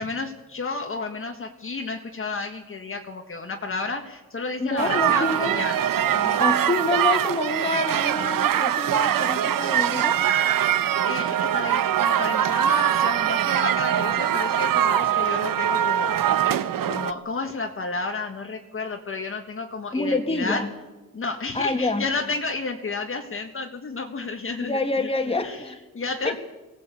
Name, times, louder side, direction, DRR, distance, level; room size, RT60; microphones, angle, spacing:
voice 1, 0.0-5.8 6.1-6.4 11.0-20.6 21.1-25.1 25.4-25.6 25.9-26.4, left 3 dB, 35° left, 3 dB, 1.7 m, -32 dB
voice 2, 4.6-5.6 6.4-10.2 19.9-20.7 21.5-22.1 24.6-25.8 26.2-26.4, left 2 dB, 15° left, 5 dB, 2.0 m, -27 dB
sound 1, 4.8-17.1, right 10 dB, 70° right, 1.0 m, -22 dB
24.0 x 18.0 x 8.4 m, 1.1 s
wide cardioid pair, 175°, 34 cm